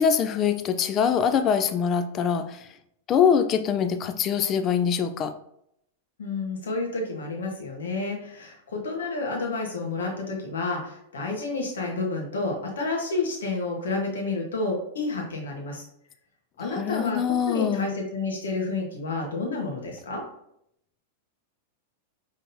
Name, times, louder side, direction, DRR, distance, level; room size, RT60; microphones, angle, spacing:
voice 1, 0.0-2.7 3.1-5.3 16.7-17.9, left 7 dB, 35° left, 9 dB, 0.5 m, -23 dB
voice 2, 6.2-15.8 16.6-20.2, left 3 dB, 75° left, 1 dB, 1.3 m, -30 dB
5.3 x 3.6 x 2.7 m, 0.74 s
figure-of-eight pair, 95°, 0 cm